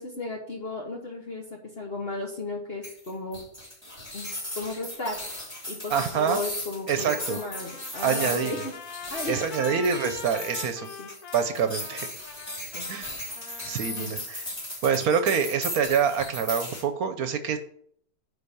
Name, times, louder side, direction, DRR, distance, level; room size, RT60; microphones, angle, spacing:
voice 1, 0.0-3.4 4.1-5.2 5.7-8.7 9.1-10.1 10.7-11.1 12.7-12.9 13.9-14.1, left 2 dB, 40° left, 0 dB, 1.4 m, -35 dB
sound 1, 2.8-16.8, left 1 dB, 15° left, 2.7 m, -37 dB
voice 2, 5.9-6.4 6.9-7.4 8.0-8.5 9.3-10.9 11.3-12.1 12.9-13.1 13.6-14.4 14.8-17.6, right 7 dB, 70° right, 9 dB, 1.2 m, -26 dB
Trumpet, 7.1-14.1, left 6 dB, 75° left, 1.4 m, -43 dB
10.0 x 4.2 x 6.8 m, 0.64 s
omnidirectional pair, 1.7 m